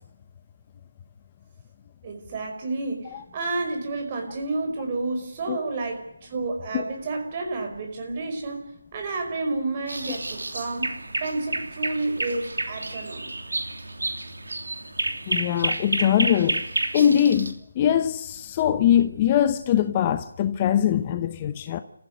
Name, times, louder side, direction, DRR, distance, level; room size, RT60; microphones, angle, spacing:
voice 1, 2.0-13.3, right 3 dB, 30° right, 5.1 m, -30 dB
sound 1, 9.9-17.5, right 2 dB, 85° right, 3.1 m, -30 dB
voice 2, 15.3-16.6 16.9-21.8, left 10 dB, 25° left, 0.9 m, -22 dB
29.0 x 15.0 x 9.5 m
figure-of-eight pair, 160°, 0 cm